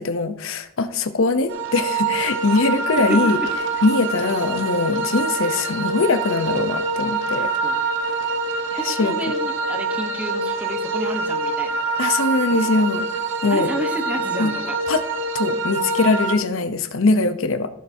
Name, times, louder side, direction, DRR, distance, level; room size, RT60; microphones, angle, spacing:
voice 1, 0.0-3.4 3.8-7.5 8.7-9.2 12.0-13.1 13.4-13.7 14.4-14.5 14.9-15.0 15.3-17.7, left 3 dB, 75° left, 11 dB, 0.7 m, -21 dB
sound 1, 1.5-16.4, right 3 dB, 65° right, 0.9 m, -25 dB
voice 2, 3.0-3.5 7.3-7.8 8.8-11.8 13.5-14.8, equal, 5° right, 5 dB, 1.0 m, -31 dB
15.0 x 6.6 x 2.7 m, 0.83 s
head